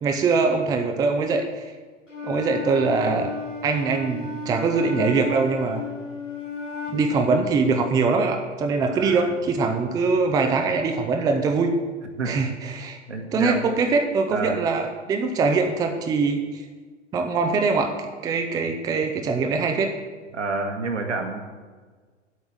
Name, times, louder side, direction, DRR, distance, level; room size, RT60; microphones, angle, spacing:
voice 1, 0.0-1.6 2.2-3.3 3.6-5.8 6.9-11.7 12.2-13.0 13.3-16.6 17.1-19.9, right 4 dB, 10° right, 4 dB, 0.5 m, -23 dB
Wind instrument woodwind instrument, 2.1-7.2, left 5 dB, 85° left, 2.1 m, -33 dB
voice 2, 8.9-9.4 12.2-12.3 13.1-13.6 14.3-14.6 20.3-21.4, right 3 dB, 70° right, 3 dB, 1.8 m, -28 dB
8.1 x 5.8 x 7.9 m, 1.4 s
figure-of-eight pair, 100°, 37 cm